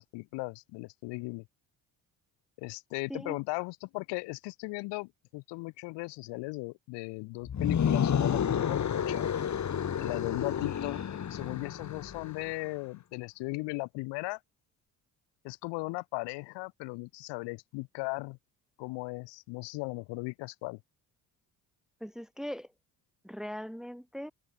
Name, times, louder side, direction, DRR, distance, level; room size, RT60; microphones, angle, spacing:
voice 1, 0.0-1.4 2.6-9.3 10.0-14.4 15.4-18.4 18.8-20.8, left 25 dB, 80° left, 0.7 m, -37 dB
sound 1, 7.4-12.5, left 8 dB, 40° left, 1.4 m, -30 dB
voice 2, 22.0-22.7 23.2-24.3, equal, ahead, 1.8 m, -40 dB
supercardioid pair, 60°, 42 cm